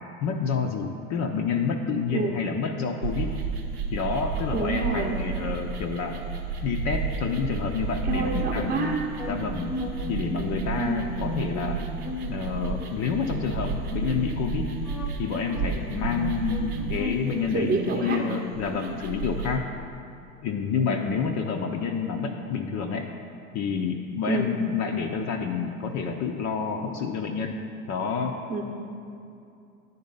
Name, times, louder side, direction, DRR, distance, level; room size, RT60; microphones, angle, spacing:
voice 1, 0.2-3.3 3.9-6.2 6.6-8.8 9.2-9.7 10.1-11.8 12.3-14.7 15.2-19.6 20.4-23.1 23.5-27.6 27.9-28.4, left 5 dB, 40° left, 3 dB, 0.5 m, -28 dB
sound 1, 3.0-19.6, right 5 dB, 85° right, 0.8 m, -33 dB
voice 2, 4.5-5.2 8.0-9.0 10.8-11.0 17.5-18.2 20.7-21.1 24.3-24.5 28.5-28.6, right 3 dB, 20° right, -1 dB, 0.8 m, -27 dB
sound 2, 8.7-18.4, left 1 dB, 90° left, 0.8 m, -36 dB
10.0 x 3.9 x 5.4 m, 2.6 s
hypercardioid pair, 85°, 45 cm